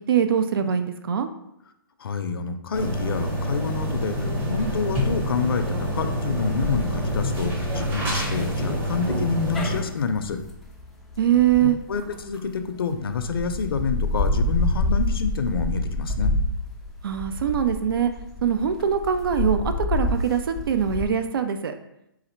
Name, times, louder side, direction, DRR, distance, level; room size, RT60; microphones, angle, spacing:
voice 1, 0.1-1.3 11.2-11.8 17.0-18.1 18.4-21.7, right 8 dB, 70° right, 8 dB, 0.4 m, -22 dB
voice 2, 2.0-10.4 11.6-16.3, left 5 dB, 75° left, 7 dB, 0.5 m, -28 dB
sound 1, 2.7-9.8, equal, 15° right, 0.8 m, -27 dB
sound 2, 6.6-12.6 13.1-21.1, left 2 dB, ahead, 0.3 m, -28 dB
4.0 x 2.5 x 4.3 m, 0.82 s
hypercardioid pair, 155°, 12 cm